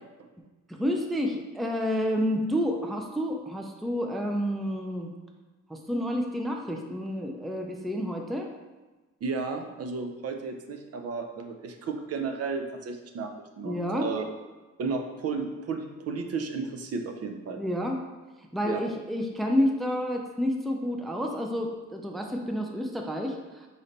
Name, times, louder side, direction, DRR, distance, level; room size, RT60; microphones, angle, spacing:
voice 1, 0.7-5.1 5.7-8.5 13.6-14.1 17.6-18.0 18.5-23.7, equal, ahead, 2 dB, 0.4 m, -29 dB
voice 2, 9.2-13.3 13.6-14.2 14.8-17.6 18.6-18.8, right 4 dB, 55° right, 5 dB, 0.6 m, -33 dB
4.0 x 3.2 x 3.9 m, 1.2 s
cardioid pair, 90°, 30 cm